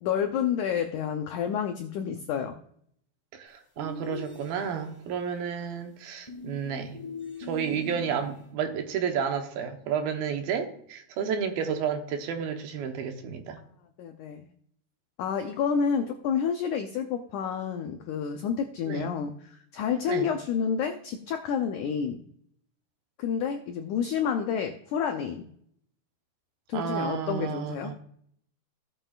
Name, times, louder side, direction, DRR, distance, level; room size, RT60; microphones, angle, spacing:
voice 1, 0.0-2.6 14.0-14.5 15.2-22.2 23.2-25.5 26.7-27.9, left 7 dB, 90° left, 1.7 m, -29 dB
voice 2, 3.3-7.0 7.4-13.6 18.9-19.1 20.1-20.3 26.7-27.9, right 7 dB, 75° right, 2.8 m, -31 dB
sound 1, 3.8-5.0 6.3-8.5, left 4 dB, 15° left, 0.9 m, -41 dB
16.5 x 7.8 x 2.4 m
omnidirectional pair, 4.5 m